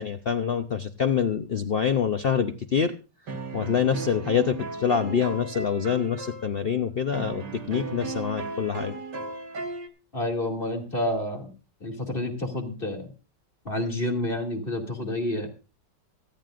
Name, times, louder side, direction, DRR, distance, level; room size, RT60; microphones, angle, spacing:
voice 1, 0.0-2.9 3.5-8.9, left 7 dB, 60° left, 7 dB, 0.6 m, -26 dB
sound 1, 3.3-6.5 7.1-9.9, right 3 dB, 75° right, 2.3 m, -36 dB
voice 2, 10.1-11.5 11.8-13.1 13.6-15.5, left 1 dB, 30° left, 2 dB, 2.7 m, -29 dB
25.5 x 9.2 x 2.5 m, 0.31 s
omnidirectional pair, 1.9 m